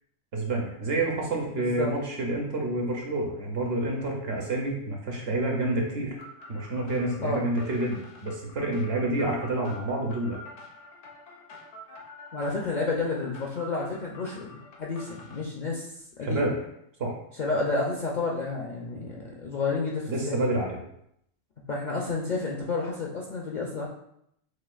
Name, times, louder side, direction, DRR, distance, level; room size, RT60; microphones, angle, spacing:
voice 1, 0.3-6.2 6.5-10.4 16.2-16.6 17.0-17.1 20.1-20.8, right 2 dB, 60° right, 0 dB, 0.9 m, -28 dB
voice 2, 1.6-1.9 7.2-7.4 9.1-9.2 12.3-15.9 16.2-16.5 17.4-20.4 21.7-23.9, left 3 dB, 55° left, -2 dB, 0.5 m, -30 dB
sound 1, 6.2-15.4, left 2 dB, 75° left, 1.1 m, -47 dB
6.2 x 2.3 x 2.4 m, 0.75 s
omnidirectional pair, 1.3 m